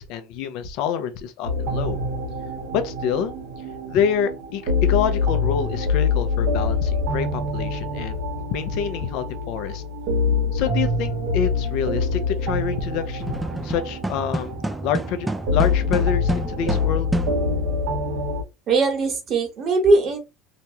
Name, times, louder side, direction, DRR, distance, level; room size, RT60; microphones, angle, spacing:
voice 1, 0.0-2.0 2.7-3.3 3.9-8.2 8.5-9.8 10.5-14.6 14.8-17.1, left 8 dB, 65° left, 0.6 m, -27 dB
sound 1, 1.4-18.4, left 4 dB, 75° right, 1.0 m, -25 dB
sound 2, 13.2-17.8, right 1 dB, 10° right, 0.4 m, -29 dB
voice 2, 18.7-20.2, right 3 dB, 45° right, 1.4 m, -20 dB
2.9 x 2.2 x 2.9 m
hypercardioid pair, 85°, 0 cm